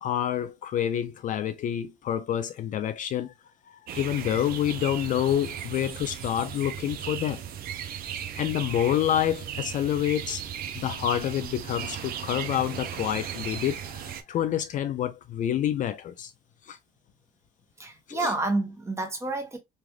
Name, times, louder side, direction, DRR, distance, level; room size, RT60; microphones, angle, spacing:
voice 1, 0.0-3.3 3.7-7.4 8.4-10.4 10.7-16.3 16.6-16.8 18.1-18.3, left 10 dB, 50° left, 0.4 m, -28 dB
sound 1, 3.9-14.2, right 9 dB, 65° right, 0.5 m, -36 dB
voice 2, 17.8-19.6, right 2 dB, 15° right, 1.0 m, -29 dB
3.2 x 2.4 x 2.3 m
cardioid pair, 110°, 17 cm